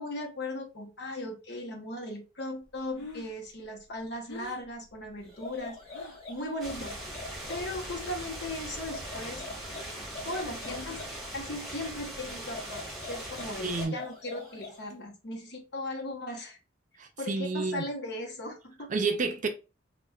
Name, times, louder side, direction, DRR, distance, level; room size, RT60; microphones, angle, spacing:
voice 1, 0.0-5.8 6.3-7.0 7.5-9.5 10.2-16.6 17.2-18.9, left 1 dB, 60° left, 0.9 m, -38 dB
Breathing, 2.7-6.3 6.6-7.1 7.4-8.4 8.7-11.3, left 2 dB, 85° left, 0.8 m, -48 dB
sound 1, 5.2-7.7 8.7-11.2 12.3-14.9, left 3 dB, 30° left, 1.3 m, -45 dB
sound 2, 6.6-13.9, right 1 dB, ahead, 1.0 m, -40 dB
voice 2, 13.6-14.0 17.0-17.8 18.9-19.5, right 3 dB, 45° right, 0.5 m, -30 dB
4.2 x 2.2 x 2.3 m
head